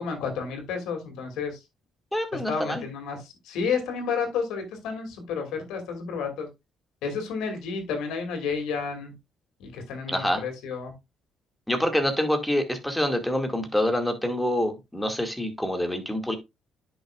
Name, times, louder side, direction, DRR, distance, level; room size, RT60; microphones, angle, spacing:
voice 1, 0.0-1.6 2.3-6.5 7.0-9.1 9.6-10.9, left 5 dB, 80° left, 5 dB, 2.5 m, -31 dB
voice 2, 2.1-2.8 10.1-10.4 11.7-16.4, left 1 dB, 5° left, 5 dB, 2.1 m, -26 dB
10.0 x 6.2 x 2.4 m, 0.22 s
supercardioid pair, 75°, 0 cm